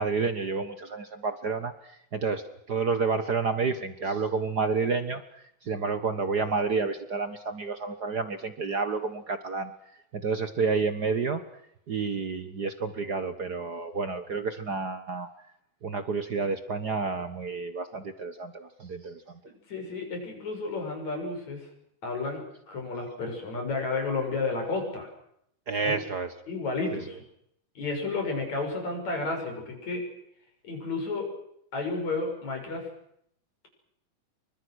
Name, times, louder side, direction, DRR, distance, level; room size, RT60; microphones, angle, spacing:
voice 1, 0.0-1.7 2.1-2.4 2.7-5.2 5.6-9.7 10.1-11.4 11.9-15.3 15.8-19.2 25.7-26.3 26.9-27.0, right 4 dB, 55° right, 10 dB, 1.1 m, -29 dB
voice 2, 19.7-21.6 22.0-25.1 25.9-26.0 26.5-27.2 27.8-30.0 30.6-31.3 31.7-32.9, left 3 dB, 60° left, 2 dB, 7.6 m, -31 dB
29.0 x 24.5 x 6.4 m, 0.73 s
omnidirectional pair, 3.6 m